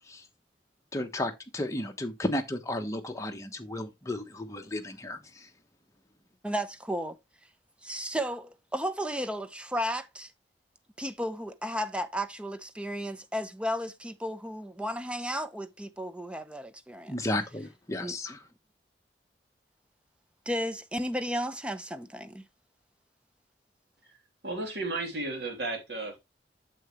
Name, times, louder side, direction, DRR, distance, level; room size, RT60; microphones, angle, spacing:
voice 1, 0.9-5.5 17.1-18.4, left 1 dB, 15° left, 1.2 m, -33 dB
voice 2, 6.4-7.2 7.8-10.3 11.0-17.1 18.0-18.4 20.5-22.5, equal, 5° right, 0.7 m, -34 dB
voice 3, 24.4-26.2, right 2 dB, 65° right, 3.1 m, -34 dB
8.9 x 6.9 x 3.1 m
head